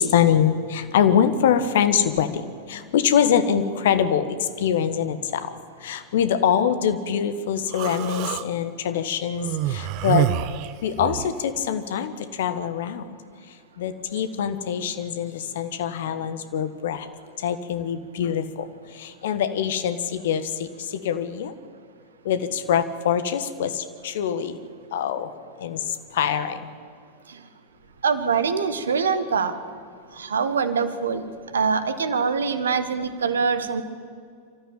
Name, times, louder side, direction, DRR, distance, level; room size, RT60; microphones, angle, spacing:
voice 1, 0.0-5.5 5.8-10.3 10.8-13.0 13.8-17.1 17.4-18.7 18.9-21.5 22.2-24.6 24.9-25.3 25.6-26.7, left 8 dB, 55° left, 11 dB, 1.4 m, -24 dB
Human voice, 7.7-8.5 9.4-11.4, right 13 dB, 45° right, 0.9 m, -26 dB
voice 2, 28.0-29.5 30.1-31.3 31.5-33.8, right 5 dB, 70° right, 12 dB, 1.4 m, -24 dB
26.0 x 14.0 x 8.9 m, 2.2 s
figure-of-eight pair, 90°, 0 cm